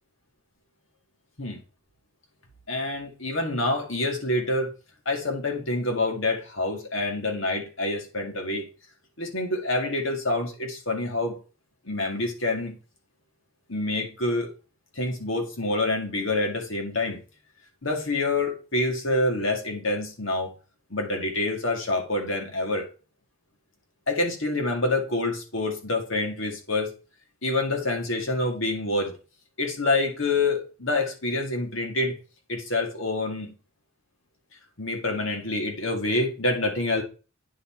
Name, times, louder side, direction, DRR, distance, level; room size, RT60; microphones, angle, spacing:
voice 1, 2.7-4.7 5.1-8.7 9.2-11.4 11.9-12.8 13.7-14.5 14.9-17.2 17.8-20.5 20.9-22.9 24.1-26.9 27.4-29.1 29.6-32.1 32.5-33.5 34.8-37.0, left 2 dB, 65° left, 2.0 m, -27 dB
9.4 x 4.2 x 4.4 m
head